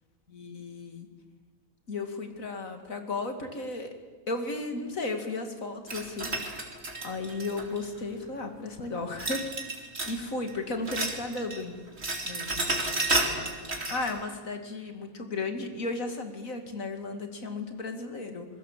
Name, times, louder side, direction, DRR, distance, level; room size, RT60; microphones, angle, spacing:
voice 1, 0.3-1.1 1.9-3.9 4.3-6.3 7.0-11.8 12.2-12.7 13.3-13.5 13.9-18.5, left 3 dB, 70° left, 6 dB, 2.9 m, -35 dB
sound 1, 5.9-8.0 9.2-10.2 10.5-11.6 11.9-14.1, right 2 dB, 50° right, 3.2 m, -31 dB
27.0 x 22.0 x 7.6 m, 1.4 s
omnidirectional pair, 1.5 m